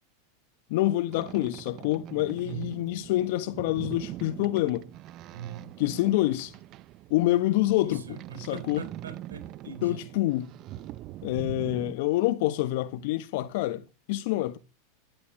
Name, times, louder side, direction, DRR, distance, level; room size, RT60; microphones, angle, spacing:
voice 1, 0.7-4.8 5.8-6.5 7.1-8.8 9.8-10.5 11.2-14.6, left 16 dB, 60° left, 1.2 m, -27 dB
Boat Water vehicle, 1.1-11.9, right 14 dB, 45° right, 0.8 m, -43 dB
voice 2, 2.4-2.7 5.3-5.7 7.8-10.0, right 8 dB, 85° right, 4.0 m, -41 dB
15.5 x 11.5 x 7.7 m
hypercardioid pair, 95°, 0 cm